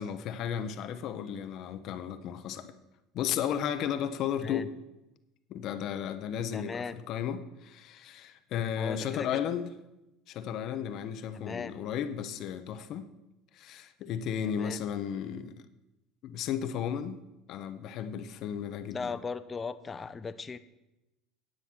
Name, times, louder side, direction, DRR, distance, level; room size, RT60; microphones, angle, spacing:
voice 1, 0.0-2.7 3.1-4.7 5.5-9.7 10.3-13.1 13.5-15.7 16.2-17.2 17.5-19.1, left 9 dB, 60° left, 10 dB, 0.8 m, -34 dB
voice 2, 6.5-7.0 8.7-9.5 11.3-11.7 14.5-14.8 18.9-20.6, left 5 dB, 25° left, 13 dB, 0.7 m, -38 dB
10.5 x 7.8 x 6.2 m, 0.96 s
hypercardioid pair, 80°, 0 cm